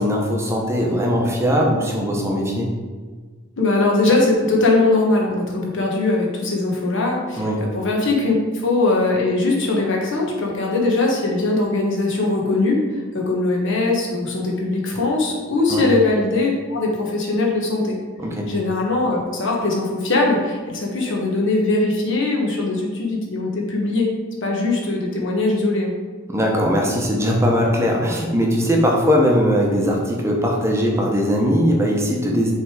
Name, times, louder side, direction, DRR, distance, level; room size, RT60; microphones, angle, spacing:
voice 1, 0.0-2.7 7.4-7.6 15.7-15.9 18.2-18.5 26.3-32.5, equal, 15° right, -1 dB, 0.9 m, -20 dB
voice 2, 3.6-8.3 8.6-12.8 13.1-18.0 18.5-24.1 24.4-25.9, left 2 dB, 65° left, -1 dB, 1.2 m, -20 dB
6.0 x 3.4 x 4.8 m, 1.5 s
head